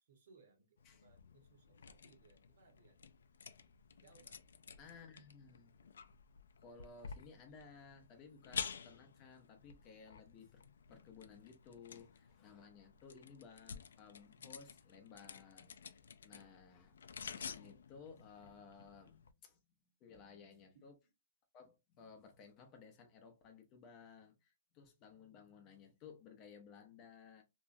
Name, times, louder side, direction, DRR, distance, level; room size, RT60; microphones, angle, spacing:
voice 1, 0.0-3.0 4.0-4.4 4.7-5.1 20.7-21.0, right 4 dB, 60° right, 1.1 m, -67 dB
sound 1, 0.8-19.3, left 6 dB, 85° left, 0.3 m, -51 dB
voice 2, 4.8-5.7 6.6-10.6 10.9-17.0 17.3-19.6 20.0-20.9 21.5-27.4, left 5 dB, 25° left, 0.6 m, -58 dB
2.9 x 2.2 x 2.6 m
hypercardioid pair, 160°, 0 cm